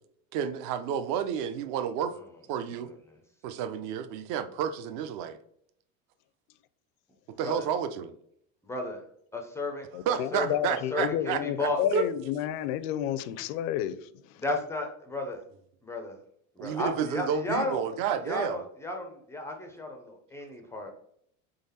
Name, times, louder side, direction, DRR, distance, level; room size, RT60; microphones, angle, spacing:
voice 1, 0.3-2.1 2.5-2.9 3.4-5.4 7.4-8.1 10.1-12.1 16.6-18.6, right 8 dB, 55° right, 0.5 m, -31 dB
voice 2, 8.6-9.0 9.3-11.8 14.4-15.4 15.8-16.2 16.6-17.8 18.2-20.9, left 2 dB, 10° left, 0.3 m, -33 dB
voice 3, 9.9-14.4, left 11 dB, 70° left, 0.5 m, -31 dB
3.9 x 3.3 x 4.1 m
cardioid pair, 155°, 41 cm